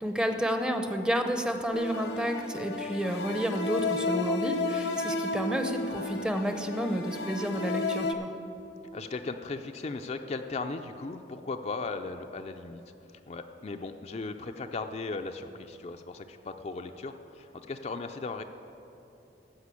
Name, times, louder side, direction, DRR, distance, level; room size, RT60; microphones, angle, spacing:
voice 1, 0.0-8.3, equal, 5° right, 6 dB, 0.6 m, -30 dB
sound 1, 1.7-8.1, left 3 dB, 80° left, 0.9 m, -33 dB
voice 2, 8.9-12.8 13.3-18.4, left 3 dB, 35° left, 6 dB, 0.4 m, -37 dB
14.5 x 5.1 x 8.3 m, 2.9 s
head